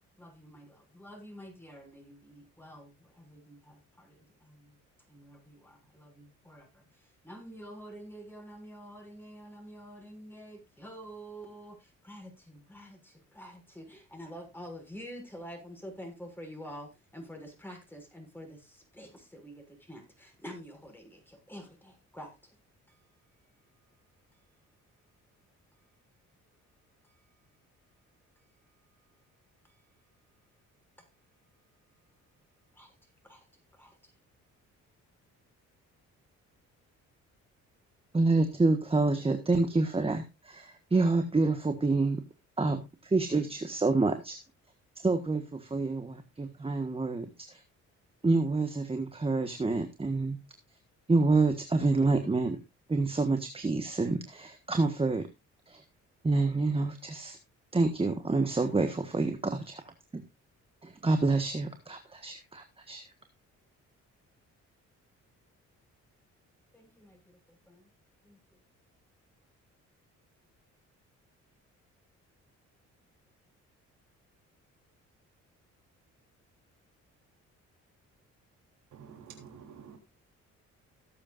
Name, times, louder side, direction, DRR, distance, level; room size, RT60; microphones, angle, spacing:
voice 1, 0.2-4.8 5.1-22.6 22.9-23.1 23.7-24.0 24.3-24.5 24.8-25.2 25.7-25.9 26.3-26.5 27.0-27.4 28.4-29.1 29.6-29.9 31.4-31.9 32.7-33.5 33.7-34.0 66.7-67.9 68.2-68.6, equal, 5° left, 6.6 m, -49 dB
voice 2, 38.1-42.2 42.6-44.4 45.0-47.6 48.2-50.4 51.1-52.6 52.9-55.3 55.7-55.8 56.2-57.4 57.7-60.2 60.8-63.1, right 3 dB, 20° right, 1.5 m, -28 dB
voice 3, 78.9-80.0, right 7 dB, 70° right, 3.4 m, -49 dB
17.5 x 8.6 x 2.5 m
cardioid pair, 90°, 30 cm